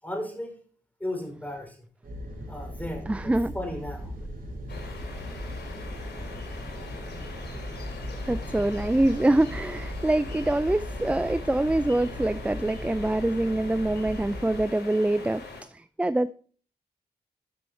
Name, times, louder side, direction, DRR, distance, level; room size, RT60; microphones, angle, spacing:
voice 1, 0.0-0.6 1.0-1.9 2.5-4.1, left 1 dB, 10° left, 5.4 m, -35 dB
sound 1, 2.0-14.6, equal, 60° right, 4.6 m, -38 dB
voice 2, 3.1-3.5 8.3-16.3, right 1 dB, 5° right, 0.4 m, -25 dB
sound 2, 4.7-15.6, left 4 dB, 75° left, 3.0 m, -42 dB
12.5 x 6.2 x 4.4 m
supercardioid pair, 40°, 17 cm